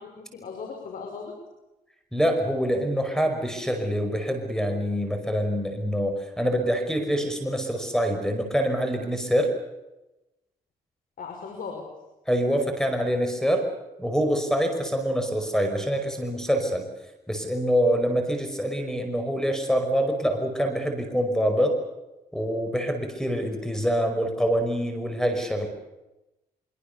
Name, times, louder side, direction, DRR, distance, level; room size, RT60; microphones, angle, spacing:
voice 1, 0.0-1.3 11.2-11.9, left 5 dB, 65° left, 2 dB, 6.0 m, -37 dB
voice 2, 2.1-9.6 12.3-13.7 14.0-16.9 17.3-21.8 22.3-25.7, equal, 5° left, 7 dB, 5.5 m, -25 dB
24.5 x 24.5 x 6.9 m, 0.98 s
cardioid pair, 85°, 15 cm